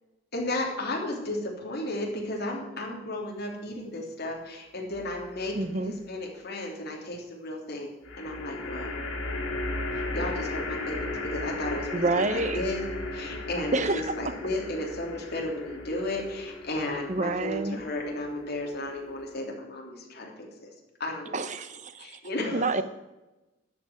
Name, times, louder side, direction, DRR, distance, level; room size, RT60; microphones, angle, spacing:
voice 1, 0.3-5.6 5.8-7.9 8.2-8.9 9.9-12.8 13.1-20.7 21.0-21.4 22.0-22.8, left 1 dB, 50° left, -1 dB, 3.2 m, -34 dB
sound 1, 4.9-5.6 8.0-19.4, left 2 dB, 85° left, 3.5 m, -36 dB
voice 2, 5.5-5.9 11.9-12.6 13.7-14.3 17.1-17.8 21.3-22.2 22.5-22.8, right 2 dB, 35° right, 12 dB, 0.8 m, -28 dB
13.0 x 6.0 x 9.3 m, 1.1 s
head